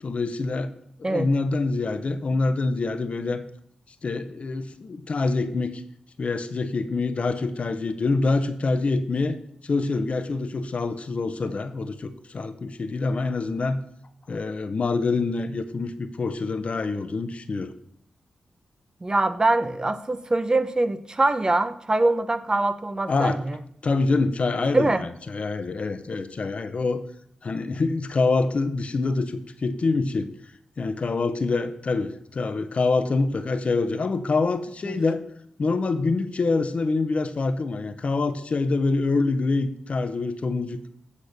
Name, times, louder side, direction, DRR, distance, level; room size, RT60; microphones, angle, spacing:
voice 1, 0.0-0.7 1.0-3.4 4.0-5.8 6.2-9.4 9.6-13.8 14.3-17.7 23.1-23.4 23.8-27.0 27.4-30.3 30.8-35.2 35.6-40.8, left 3 dB, 55° left, 0.8 m, -25 dB
voice 2, 19.0-23.6 24.7-25.0 34.8-35.0, right 2 dB, 30° right, 0.6 m, -23 dB
8.3 x 4.3 x 6.5 m
supercardioid pair, 45°, 3 cm